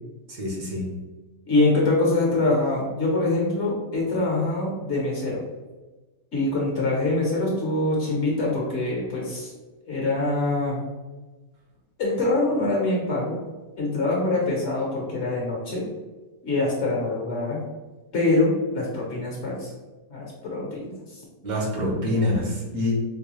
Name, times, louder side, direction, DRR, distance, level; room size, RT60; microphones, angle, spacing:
voice 1, 0.3-0.9 21.4-22.9, left 1 dB, 70° right, -3 dB, 1.5 m, -26 dB
voice 2, 1.5-5.4 6.3-9.5 9.9-10.8 12.0-13.4 13.8-15.9 16.4-17.6 18.1-19.7 20.1-21.2, left 2 dB, 50° left, -3 dB, 1.1 m, -24 dB
4.4 x 2.2 x 3.0 m, 1.2 s
omnidirectional pair, 1.6 m